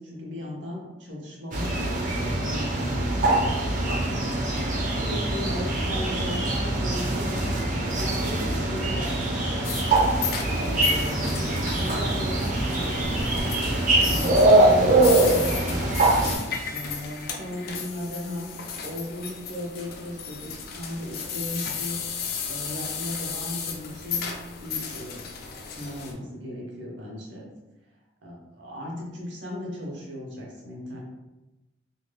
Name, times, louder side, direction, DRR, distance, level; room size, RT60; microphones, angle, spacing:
voice 1, 0.0-4.2 4.5-9.9 10.5-13.1 14.0-15.9 16.7-18.5 18.8-22.0 22.5-24.3 24.6-25.3 25.7-27.5 28.2-31.0, left 1 dB, 80° right, -2 dB, 0.8 m, -36 dB
sound 1, 1.5-16.4, right 2 dB, 45° right, 0.5 m, -23 dB
sound 2, 9.6-26.1, left 6 dB, 55° left, 0.4 m, -35 dB
2.6 x 2.2 x 3.2 m, 1.0 s
head